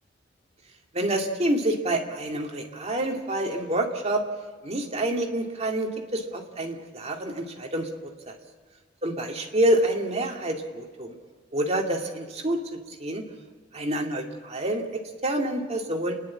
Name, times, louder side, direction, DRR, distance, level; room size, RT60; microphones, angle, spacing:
voice 1, 0.9-4.2 4.6-7.9 8.3-8.4 9.0-11.1 11.5-12.6 12.9-13.2 13.7-16.1, right 1 dB, 35° right, 2 dB, 2.2 m, -27 dB
29.5 x 10.5 x 8.6 m, 1.4 s
head